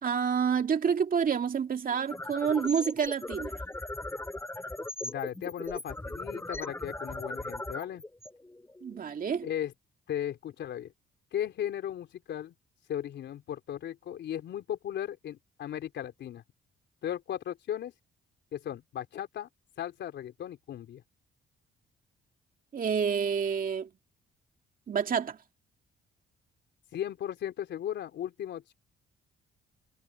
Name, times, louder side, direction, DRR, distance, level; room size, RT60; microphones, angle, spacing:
voice 1, 0.0-3.6 8.8-9.5 22.7-23.9 24.9-25.4, right 7 dB, 50° right, 2.5 m, -28 dB
sound 1, 1.9-9.0, left 2 dB, 15° left, 6.8 m, -38 dB
voice 2, 5.0-8.0 9.4-9.7 10.1-10.9 11.3-12.5 12.9-16.4 17.0-17.9 18.5-19.5 19.8-21.0 26.9-28.7, left 10 dB, 70° left, 4.0 m, -36 dB
cardioid pair, 90°, 19 cm